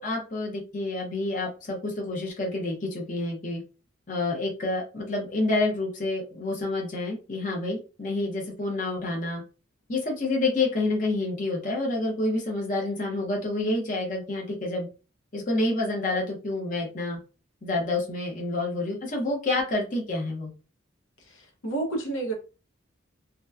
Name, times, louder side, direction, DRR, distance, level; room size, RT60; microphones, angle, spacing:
voice 1, 0.0-3.6 4.1-9.4 9.9-14.9 15.3-17.2 17.6-20.5, left 2 dB, 40° left, 0.7 m, -28 dB
voice 2, 21.2-22.3, right 2 dB, 80° left, 0.7 m, -31 dB
2.8 x 2.1 x 2.3 m
head